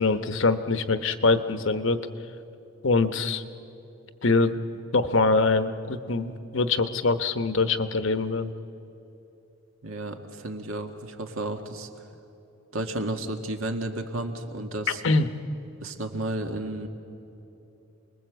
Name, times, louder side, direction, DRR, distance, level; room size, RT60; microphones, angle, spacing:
voice 1, 0.0-2.0 2.8-3.4 4.2-4.6 4.9-8.5 15.0-15.3, left 3 dB, 65° left, 10 dB, 1.0 m, -23 dB
voice 2, 9.8-11.9 12.7-15.0 15.8-16.9, right 1 dB, 75° right, 5 dB, 1.9 m, -32 dB
28.5 x 20.5 x 8.0 m, 2.9 s
head